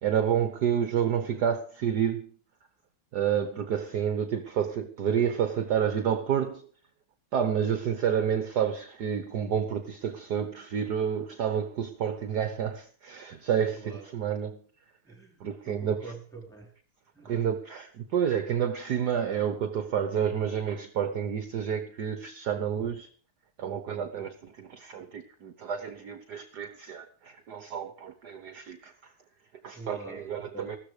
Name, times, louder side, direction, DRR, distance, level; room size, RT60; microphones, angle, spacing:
voice 1, 0.0-2.3 3.1-6.7 7.3-14.6 15.4-16.0 17.2-23.1 23.6-29.1 29.6-30.8, right 8 dB, 55° right, 1.5 m, -29 dB
voice 2, 13.7-14.1 15.0-16.7 17.1-17.5 29.7-30.7, right 3 dB, ahead, 4.3 m, -45 dB
15.5 x 13.5 x 5.0 m
omnidirectional pair, 2.3 m